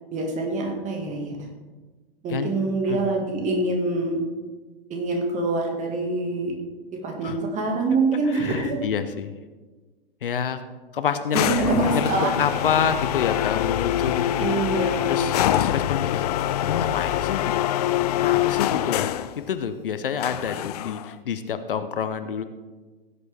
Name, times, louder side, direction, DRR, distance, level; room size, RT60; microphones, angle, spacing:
voice 1, 0.1-1.4 2.2-4.2 4.9-6.6 6.9-8.8 11.3-12.3 14.4-15.4, right 3 dB, 25° right, 2 dB, 2.0 m, -25 dB
voice 2, 2.9-3.2 7.2-7.4 8.3-9.3 10.2-10.6 10.9-11.5 11.9-12.1 12.4-14.5 15.1-16.3 16.6-17.6 18.2-19.1 19.4-22.4, left 7 dB, 65° left, 10 dB, 0.8 m, -28 dB
sound 1, 11.3-19.4 20.2-21.1, left 12 dB, 40° left, 0.4 m, -24 dB
16.5 x 8.1 x 3.5 m, 1.3 s
figure-of-eight pair, 105°, 30 cm